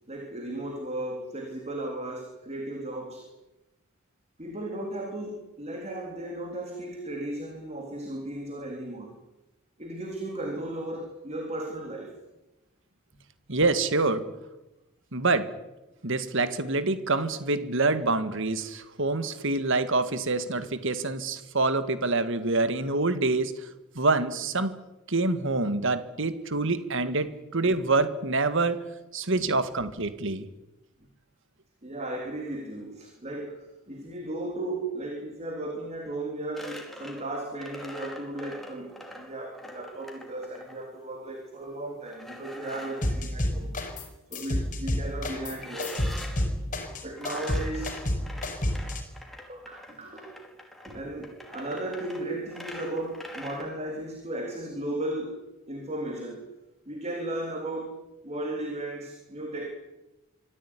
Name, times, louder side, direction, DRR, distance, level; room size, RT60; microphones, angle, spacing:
voice 1, 0.1-3.3 4.4-9.2 9.8-12.1 29.3-29.5 31.8-43.7 44.3-46.0 47.0-48.0 49.5-50.4 50.9-55.4 55.7-56.5 56.9-59.7, right 1 dB, 30° right, 2 dB, 3.7 m, -35 dB
voice 2, 13.5-14.3 15.1-15.5 16.0-23.6 24.0-24.8 25.1-28.8 29.1-30.5, right 3 dB, 60° right, 12 dB, 1.9 m, -26 dB
sound 1, 36.6-40.8 42.1-43.2 45.5-46.5 47.1-53.6, left 1 dB, ahead, 4.7 m, -43 dB
sound 2, 43.0-44.1 44.3-49.0, left 1 dB, 40° left, 5.4 m, -29 dB
25.5 x 15.5 x 10.0 m, 1.0 s
head